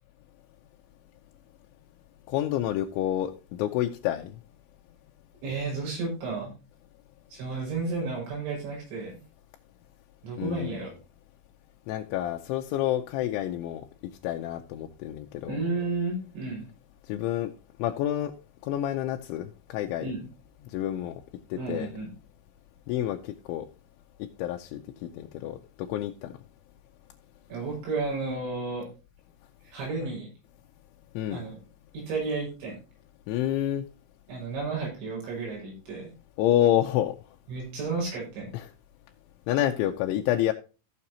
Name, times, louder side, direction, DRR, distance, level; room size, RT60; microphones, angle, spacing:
voice 1, 2.3-4.4 10.4-10.8 11.9-13.8 14.2-15.6 17.1-17.5 17.8-18.3 18.6-20.1 20.7-21.2 21.5-21.9 22.9-23.7 24.4-26.3 31.2-31.4 33.3-33.8 36.4-37.2 38.5-38.6 39.5-40.5, left 12 dB, 80° left, 3.0 m, -28 dB
voice 2, 5.4-6.5 7.3-9.1 10.2-11.0 15.5-16.7 20.0-20.3 21.6-22.1 27.5-28.9 29.6-30.3 31.3-31.6 31.9-32.8 34.3-36.1 37.5-38.5, right 3 dB, 75° right, 7.8 m, -32 dB
15.0 x 6.9 x 2.8 m
omnidirectional pair, 5.5 m